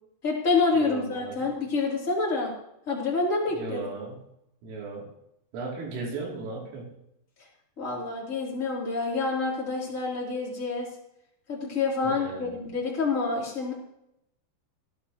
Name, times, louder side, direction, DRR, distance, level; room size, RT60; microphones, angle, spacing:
voice 1, 0.2-2.5 2.9-3.8 7.8-10.9 11.5-13.7, left 3 dB, 20° left, -3 dB, 3.1 m, -27 dB
voice 2, 0.7-1.5 3.5-4.3 4.6-5.1 5.5-6.9 12.0-12.5, right 3 dB, 80° right, -2 dB, 5.8 m, -36 dB
17.5 x 11.5 x 3.1 m, 0.79 s
omnidirectional pair, 5.9 m